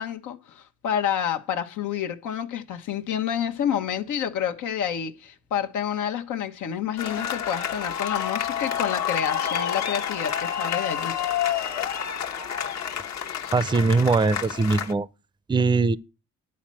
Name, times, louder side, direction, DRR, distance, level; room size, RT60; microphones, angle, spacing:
voice 1, 0.0-11.1 13.4-13.5, left 9 dB, 80° left, 1.2 m, -29 dB
sound 1, 7.0-14.9, left 9 dB, 60° left, 1.2 m, -29 dB
voice 2, 13.5-15.1 15.5-16.0, right 4 dB, 15° right, 0.5 m, -21 dB
11.0 x 4.4 x 7.5 m
cardioid pair, 90°, 30 cm